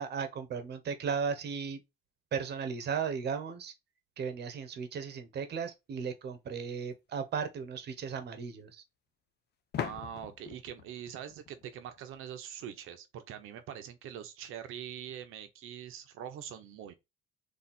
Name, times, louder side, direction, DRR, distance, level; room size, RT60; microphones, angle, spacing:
voice 1, 0.0-1.8 2.3-3.7 4.2-8.8, right 6 dB, 55° right, 1.1 m, -36 dB
sound 1, 6.7-6.8 9.7-12.4, left 9 dB, 50° left, 0.6 m, -41 dB
voice 2, 9.8-16.9, right 9 dB, 80° right, 1.0 m, -43 dB
4.1 x 2.7 x 4.3 m
cardioid pair, 125°, 21 cm